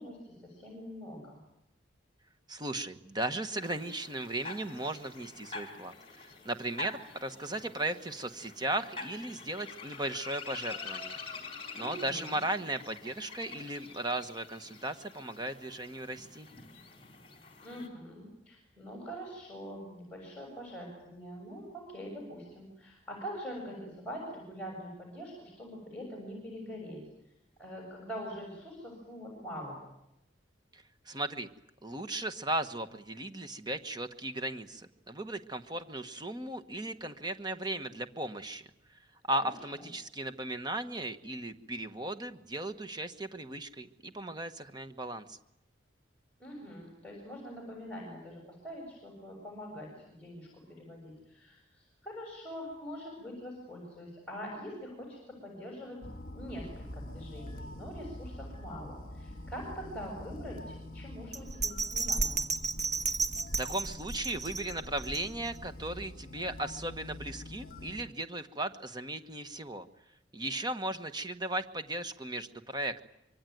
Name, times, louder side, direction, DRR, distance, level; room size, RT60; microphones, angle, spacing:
voice 1, 0.0-1.4 11.8-12.4 17.6-27.0 27.6-29.8 39.4-39.5 46.4-56.0 56.3-62.5, equal, 5° left, -1 dB, 6.7 m, -44 dB
voice 2, 2.5-11.2 11.7-16.5 30.7-31.5 31.8-38.7 39.3-45.4 63.6-69.9 70.3-73.0, right 1 dB, 25° right, 9 dB, 1.2 m, -36 dB
sound 1, 3.6-17.9, left 4 dB, 30° left, 4.1 m, -46 dB
sound 2, 56.0-68.1, left 1 dB, 50° left, 1.7 m, -46 dB
Bell, 61.3-65.7 66.1-66.2, right 3 dB, 40° right, 1.2 m, -33 dB
25.0 x 24.5 x 9.3 m, 0.84 s
head